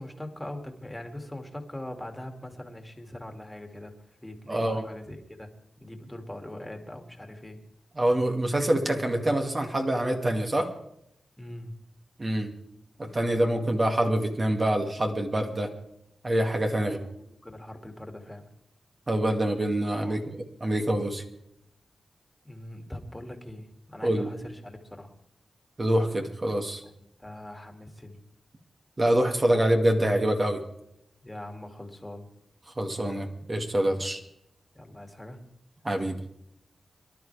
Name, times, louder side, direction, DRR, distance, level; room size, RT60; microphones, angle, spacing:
voice 1, 0.0-3.9 4.2-5.5 5.8-7.6 11.4-11.7 17.2-18.5 20.0-20.3 22.4-25.1 27.0-28.2 31.2-32.3 33.9-34.1 34.7-35.4, left 1 dB, 10° left, 4 dB, 2.5 m, -41 dB
voice 2, 4.5-4.8 8.0-10.7 12.2-12.5 13.0-15.7 16.2-17.0 19.1-21.2 24.0-24.3 25.8-26.8 29.0-30.6 32.8-34.2 35.8-36.2, right 1 dB, 35° right, 3 dB, 2.3 m, -25 dB
24.5 x 12.0 x 3.5 m, 0.79 s
cardioid pair, 75°, 0 cm